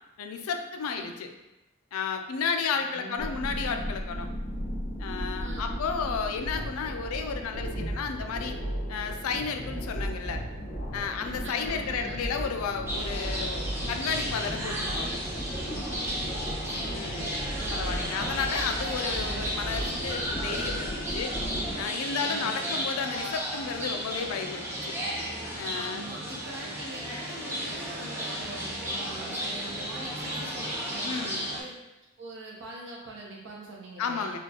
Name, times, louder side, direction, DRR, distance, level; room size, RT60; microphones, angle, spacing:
voice 1, 0.2-1.3 1.9-4.3 5.0-8.6 8.9-10.4 10.9-15.2 16.8-17.3 17.7-21.3 21.8-24.9 25.5-26.0 31.0-31.5 34.0-34.4, left 6 dB, 85° left, 6 dB, 0.4 m, -33 dB
voice 2, 2.7-3.4 5.4-5.7 11.4-12.2 16.2-18.3 19.3-19.5 22.3-22.8 25.7-31.7 32.2-34.4, right 1 dB, 60° right, -3 dB, 0.8 m, -43 dB
sound 1, 3.2-21.9, equal, 65° left, 1.1 m, -35 dB
sound 2, 12.9-31.6, equal, 10° right, 0.5 m, -34 dB
4.2 x 2.3 x 2.9 m, 0.98 s
head